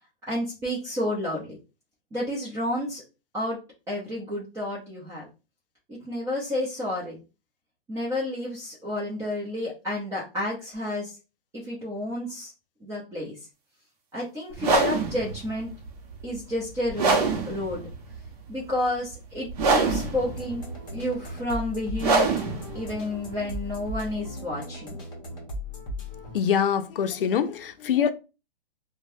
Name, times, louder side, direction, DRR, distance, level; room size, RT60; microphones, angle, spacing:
voice 1, 0.3-1.6 2.1-3.0 3.3-3.6 3.9-5.3 6.0-7.2 7.9-11.1 11.5-12.5 12.8-13.4 14.1-15.7 16.2-17.2 17.5-17.9 18.5-20.6 20.9-22.3 22.7-24.9, left 1 dB, 10° right, 0.7 m, -30 dB
sound 1, 14.5-24.4, right 4 dB, 45° right, 0.8 m, -26 dB
sound 2, 19.6-26.4, left 2 dB, 15° left, 1.1 m, -37 dB
voice 2, 26.3-28.1, left 8 dB, 70° left, 0.6 m, -24 dB
3.1 x 2.2 x 2.6 m
hypercardioid pair, 140°, 29 cm